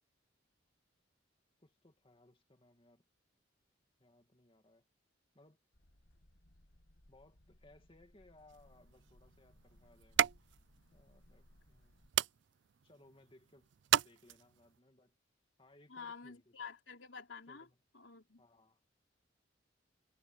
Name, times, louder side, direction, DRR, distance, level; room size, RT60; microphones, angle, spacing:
voice 1, 1.6-3.0 4.0-4.8 5.3-5.6 7.1-10.6 10.9-12.0 12.8-13.7 14.0-15.2 15.6-16.7 17.5-17.8 18.4-18.8, left 1 dB, 30° left, 2.2 m, -65 dB
sound 1, 5.7-12.1, left 1 dB, 75° left, 2.1 m, -66 dB
sound 2, 8.5-14.8, right 11 dB, 65° right, 0.4 m, -38 dB
voice 2, 15.9-17.7 17.9-18.4, left 5 dB, 90° left, 3.5 m, -49 dB
head